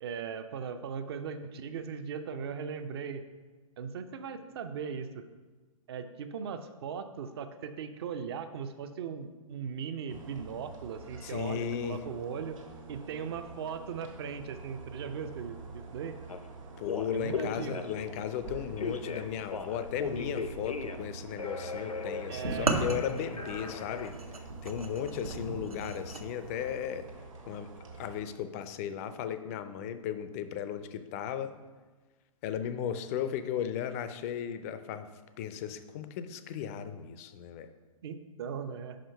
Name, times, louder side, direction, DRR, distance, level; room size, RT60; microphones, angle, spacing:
voice 1, 0.0-3.2 3.8-5.2 5.9-12.6 12.9-16.2 17.1-17.8 22.3-22.8 38.0-39.0, right 6 dB, 45° right, 9 dB, 0.6 m, -38 dB
sound 1, 10.1-28.2, right 4 dB, 60° right, 1.4 m, -47 dB
voice 2, 11.2-12.0 16.8-24.1 24.6-27.1 27.5-27.7 28.0-31.5 32.4-35.1 35.4-37.7, left 9 dB, 25° left, 11 dB, 0.4 m, -36 dB
Telephone, 16.3-16.4 16.8-18.2 18.8-21.1 21.3-24.1, left 5 dB, 75° left, 0.6 m, -38 dB
sound 2, 22.4-26.2, right 2 dB, 80° right, 0.8 m, -34 dB
5.6 x 5.1 x 5.5 m, 1.3 s
figure-of-eight pair, 120°, 18 cm